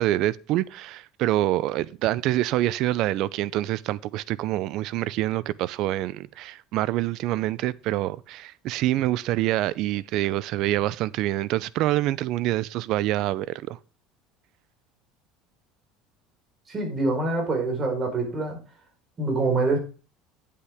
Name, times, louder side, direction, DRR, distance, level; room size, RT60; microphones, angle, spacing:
voice 1, 0.0-13.8, right 15 dB, 60° right, 0.5 m, -26 dB
voice 2, 16.7-18.6 19.2-19.8, right 3 dB, 25° right, 4.4 m, -25 dB
9.9 x 8.5 x 3.5 m
cardioid pair, 130°, 0 cm